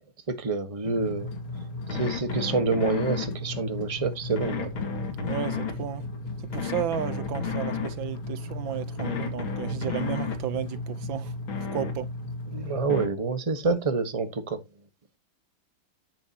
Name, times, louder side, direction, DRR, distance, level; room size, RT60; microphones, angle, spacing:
voice 1, 0.3-1.3 1.9-4.7 12.5-14.6, right 4 dB, 20° right, 1.2 m, -27 dB
sound 1, 0.8-13.1, left 4 dB, 85° left, 2.8 m, -33 dB
voice 2, 5.2-6.0 6.5-11.3 11.7-12.1, right 11 dB, 75° right, 1.6 m, -33 dB
10.5 x 9.2 x 2.9 m
omnidirectional pair, 2.2 m